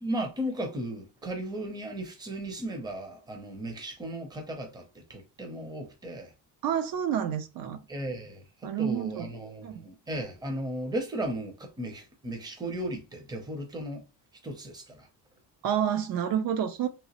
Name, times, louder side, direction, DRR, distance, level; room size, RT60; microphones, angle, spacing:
voice 1, 0.0-6.3 7.9-14.0 14.4-15.1, right 1 dB, 10° right, 0.5 m, -36 dB
voice 2, 6.6-7.8 8.6-9.3 9.6-9.8 15.6-16.9, right 9 dB, 60° right, 0.5 m, -29 dB
3.0 x 2.9 x 2.9 m
cardioid pair, 175°, 41 cm